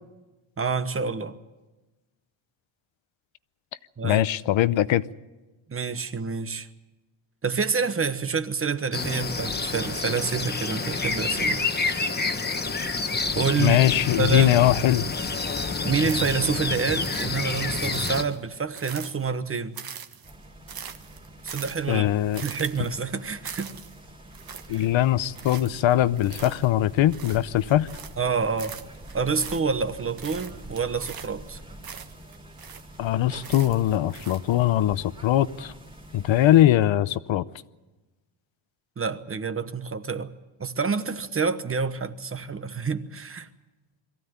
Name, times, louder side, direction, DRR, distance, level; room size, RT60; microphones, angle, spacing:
voice 1, 0.6-1.4 4.0-4.3 5.7-6.7 7.4-11.7 13.4-13.8 14.2-14.6 15.8-19.8 21.4-22.0 22.4-23.7 24.7-24.9 28.2-28.7 29.1-31.6 39.0-40.3 40.6-43.5, right 5 dB, 30° right, 1.1 m, -27 dB
voice 2, 4.0-5.0 13.6-15.0 21.9-22.4 24.7-27.9 33.0-35.7 36.1-37.4, left 13 dB, 75° left, 0.8 m, -21 dB
sound 1, 8.9-18.2, left 4 dB, 20° left, 1.2 m, -28 dB
sound 2, 16.0-16.7 17.0-19.4 19.7-28.3 28.6-29.9 30.2-33.0 33.4-34.6, right 7 dB, 45° right, 1.5 m, -42 dB
sound 3, 20.2-36.7, right 1 dB, 10° right, 2.5 m, -46 dB
22.5 x 15.5 x 9.5 m
cardioid pair, 135°, 48 cm